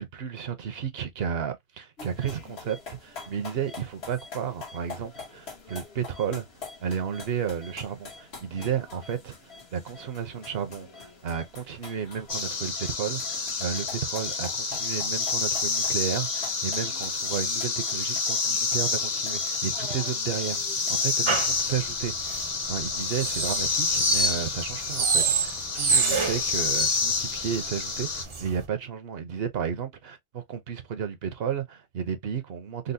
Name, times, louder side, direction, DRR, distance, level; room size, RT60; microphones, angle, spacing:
voice 1, 0.0-6.5 6.8-32.9, right 8 dB, 75° right, 0.9 m, -33 dB
sound 1, 2.0-21.1, left 4 dB, 85° left, 1.4 m, -45 dB
sound 2, 12.3-28.2, left 4 dB, 45° left, 0.7 m, -29 dB
sound 3, 21.3-28.7, right 4 dB, 40° right, 0.5 m, -28 dB
3.9 x 2.0 x 2.5 m
omnidirectional pair, 1.0 m